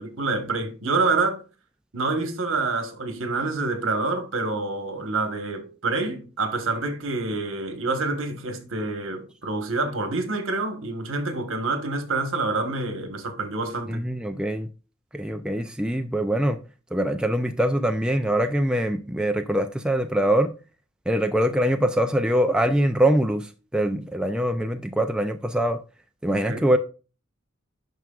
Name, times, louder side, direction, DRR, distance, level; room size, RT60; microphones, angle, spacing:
voice 1, 0.0-1.4 1.9-14.1 26.5-26.7, right 3 dB, 65° right, 1.3 m, -27 dB
voice 2, 13.9-14.7 15.1-16.6 16.9-20.5 21.1-25.8 26.2-26.8, right 1 dB, 5° right, 0.3 m, -23 dB
9.2 x 6.0 x 2.4 m
head